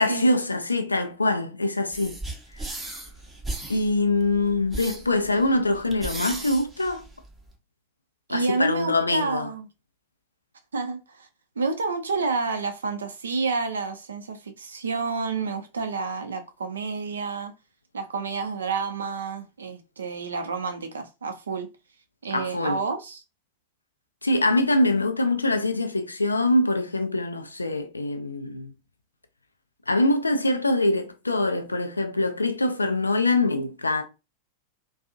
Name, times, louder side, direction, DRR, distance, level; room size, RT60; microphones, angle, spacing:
voice 1, 0.0-2.2 3.7-7.0 8.3-9.5 22.3-22.8 24.2-28.7 29.9-34.0, left 2 dB, 80° left, 0.4 m, -24 dB
sound 1, 1.9-7.5, right 2 dB, 10° right, 0.7 m, -37 dB
voice 2, 8.3-9.7 10.7-11.3 11.6-17.5 17.9-21.7 22.2-23.2, right 4 dB, 70° right, 0.5 m, -29 dB
2.6 x 2.3 x 2.5 m
figure-of-eight pair, 90°, 0 cm